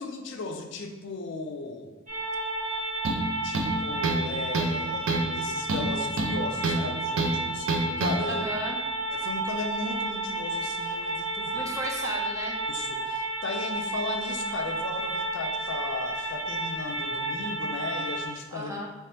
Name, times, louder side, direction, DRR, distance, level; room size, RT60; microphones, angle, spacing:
voice 1, 0.0-1.9 3.4-8.5 9.1-11.7 12.7-18.7, left 3 dB, 60° left, 4 dB, 0.4 m, -36 dB
sound 1, 2.1-18.3, right 2 dB, 35° right, 1.0 m, -31 dB
sound 2, 3.0-3.3 3.5-4.3 4.5-4.8 5.1-5.3 5.7-6.8 7.2-7.3 7.7-8.2, right 2 dB, 65° right, 0.5 m, -27 dB
voice 2, 8.3-8.8 11.5-12.6 18.5-18.9, right 1 dB, 15° right, 0 dB, 0.4 m, -34 dB
3.1 x 2.9 x 3.3 m, 1.1 s
head